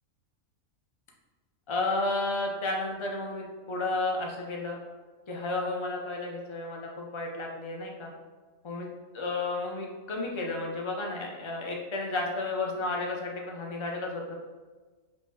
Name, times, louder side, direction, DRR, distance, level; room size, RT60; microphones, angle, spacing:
voice 1, 1.7-4.8 5.3-8.1 8.6-8.9 9.1-14.4, left 2 dB, 45° left, 0 dB, 0.3 m, -32 dB
5.1 x 2.1 x 3.5 m, 1.4 s
omnidirectional pair, 1.3 m